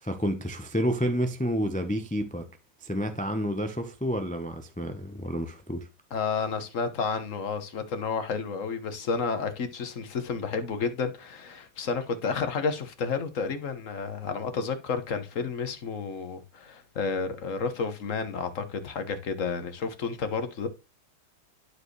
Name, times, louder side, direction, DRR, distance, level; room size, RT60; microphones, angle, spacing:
voice 1, 0.0-2.5 2.8-5.9, equal, 10° left, 0.3 m, -29 dB
voice 2, 6.1-20.7, left 5 dB, 50° left, 1.4 m, -31 dB
11.5 x 4.7 x 3.2 m
omnidirectional pair, 1.9 m